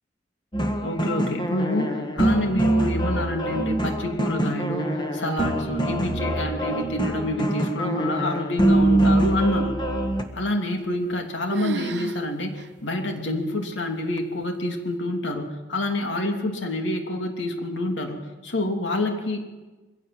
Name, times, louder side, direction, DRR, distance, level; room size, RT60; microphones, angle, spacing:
sound 1, 0.5-10.2, right 1 dB, 25° left, 1.5 m, -24 dB
voice 1, 0.8-9.8 10.3-19.4, left 1 dB, 85° left, 4 dB, 2.9 m, -27 dB
sound 2, 10.7-11.2 11.5-12.2 12.6-12.7 13.3-13.4 14.2-14.6, right 3 dB, 70° right, 0.8 m, -33 dB
23.0 x 16.5 x 7.8 m, 1.2 s
head